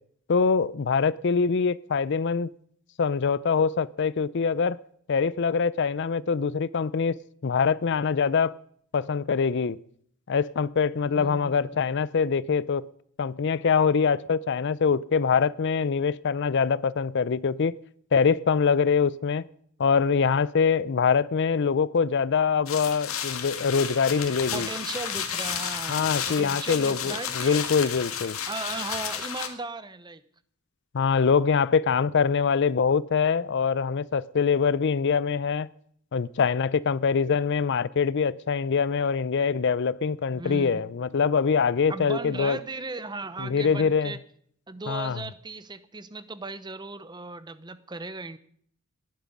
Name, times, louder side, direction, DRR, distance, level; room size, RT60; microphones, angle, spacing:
voice 1, 0.3-2.5 3.0-4.8 5.1-8.6 8.9-9.8 10.3-12.8 13.2-17.8 18.1-19.5 19.8-24.7 25.9-28.4 30.9-35.7 36.1-42.6 43.4-44.1 44.9-45.2, left 5 dB, 55° left, 0.5 m, -24 dB
voice 2, 11.0-11.9 24.5-27.6 28.5-30.2 40.3-40.9 41.1-41.2 41.9-44.2 44.7-48.4, right 3 dB, 20° right, 0.7 m, -37 dB
sound 1, 22.7-29.5, left 8 dB, 80° left, 2.0 m, -32 dB
18.5 x 11.0 x 5.3 m
head